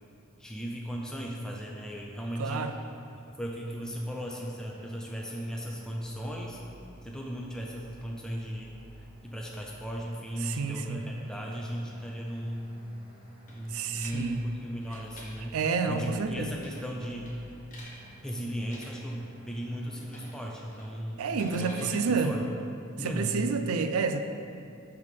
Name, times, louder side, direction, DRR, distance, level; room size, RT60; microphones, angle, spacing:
voice 1, 0.4-2.8 3.3-6.6 7.0-8.7 9.2-12.9 13.5-15.6 15.9-17.4 18.2-21.3 21.6-22.5 23.0-23.4, equal, 5° left, -2 dB, 0.4 m, -36 dB
voice 2, 2.4-2.8 10.4-11.0 13.7-14.4 15.5-16.6 21.2-22.4 23.0-24.2, right 5 dB, 70° right, 8 dB, 0.4 m, -29 dB
sound 1, 3.9-21.0, equal, 25° right, 0.9 m, -53 dB
sound 2, 13.5-14.2 14.8-15.2 16.6-16.9 17.3-17.9 18.6-18.9 20.1-20.4 20.7-21.9, left 2 dB, 35° left, 1.3 m, -48 dB
6.2 x 3.6 x 5.8 m, 2.6 s
head